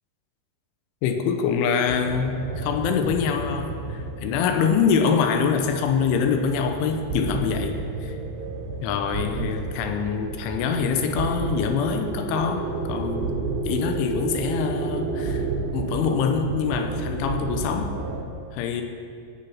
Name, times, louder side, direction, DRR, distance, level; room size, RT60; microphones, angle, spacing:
voice 1, 1.0-8.1 8.8-13.4 13.7-18.0 18.5-18.8, left 6 dB, 85° left, 6 dB, 3.2 m, -25 dB
sound 1, 1.9-18.2, right 3 dB, 70° right, 3.3 m, -31 dB
17.5 x 7.0 x 5.7 m, 2.3 s
omnidirectional pair, 5.6 m